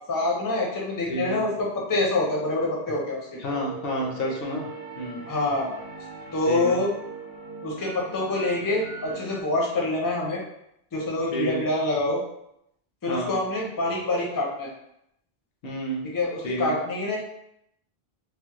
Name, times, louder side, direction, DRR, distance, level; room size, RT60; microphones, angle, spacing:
voice 1, 0.1-3.4 5.3-5.7 6.3-6.9 7.6-10.4 10.9-12.2 13.0-14.7 16.1-17.2, left 2 dB, 25° left, -2 dB, 0.5 m, -26 dB
voice 2, 1.1-1.4 3.4-4.7 5.0-5.2 6.5-6.8 11.3-11.6 13.1-13.4 15.6-16.1 16.4-16.7, equal, 70° left, 0 dB, 0.8 m, -29 dB
sound 1, 3.1-9.4, right 3 dB, 30° right, 0.5 m, -41 dB
3.3 x 2.0 x 2.9 m, 0.77 s
omnidirectional pair, 1.0 m